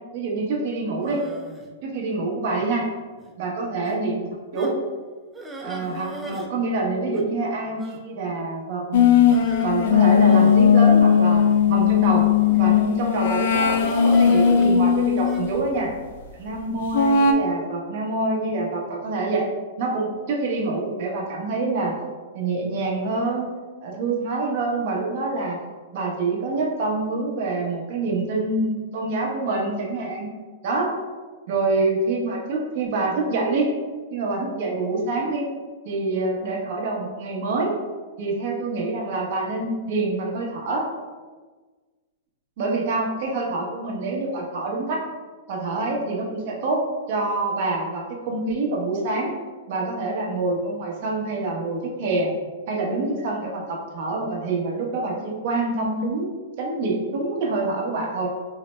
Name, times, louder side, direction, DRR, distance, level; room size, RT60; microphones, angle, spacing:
voice 1, 0.1-1.2 1.8-2.9 3.4-4.3 4.5-4.8 5.6-9.3 9.6-12.2 12.5-15.9 16.4-19.5 19.8-21.9 22.3-23.5 23.8-25.6 25.9-30.3 30.6-30.9 31.5-33.7 34.1-35.5 35.8-37.7 38.2-40.8 42.6-45.0 45.5-46.8 47.1-49.3 49.7-52.3 52.7-56.3 56.6-58.3, right 3 dB, 55° right, -1 dB, 0.8 m, -26 dB
sound 1, 1.0-1.7 2.5-2.8 3.2-3.3 3.8-4.0 4.5-4.8 5.3-6.5 6.7-6.8 7.1-7.3 7.8-8.0 9.3-9.7 10.3-11.6 12.4-12.9 13.8-15.4, right 2 dB, 10° right, 0.4 m, -37 dB
sound 2, 8.9-15.5 16.9-17.3, left 7 dB, 65° left, 0.3 m, -17 dB
3.9 x 2.1 x 3.1 m, 1.4 s
hypercardioid pair, 145°, 0 cm